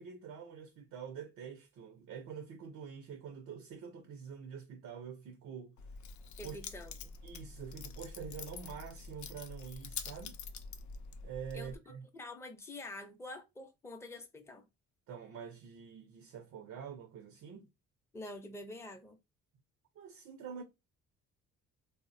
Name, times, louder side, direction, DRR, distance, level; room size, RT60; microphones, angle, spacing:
voice 1, 0.0-5.7 6.4-6.6 7.2-10.4 11.2-12.0 15.1-17.7 20.0-20.6, right 7 dB, 70° right, 0.6 m, -46 dB
Keys jangling, 5.8-11.8, left 5 dB, 70° left, 0.5 m, -46 dB
voice 2, 6.4-7.1 11.5-11.7 12.1-14.7 18.1-19.2, left 2 dB, 10° left, 0.5 m, -47 dB
3.4 x 2.1 x 2.5 m
cardioid pair, 90°, 30 cm